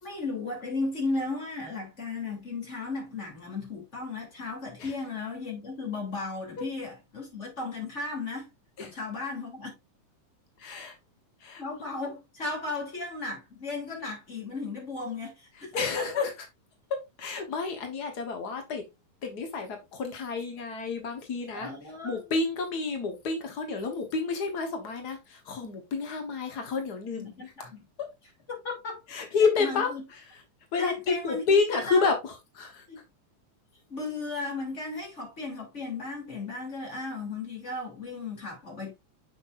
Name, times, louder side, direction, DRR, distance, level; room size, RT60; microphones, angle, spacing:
voice 1, 0.0-8.5 8.8-9.7 11.6-16.1 21.5-22.2 27.2-27.7 28.6-29.0 29.6-30.0 30.8-31.4 31.7-32.0 32.9-33.0 33.9-38.9, left 3 dB, 20° left, 3.0 m, -35 dB
voice 2, 10.6-11.0 11.4-11.6 15.6-16.3 17.2-18.8 19.2-21.7 22.0-27.5 29.1-30.4 30.7-32.8, left 4 dB, 85° left, 0.8 m, -29 dB
7.8 x 5.8 x 2.5 m
omnidirectional pair, 3.7 m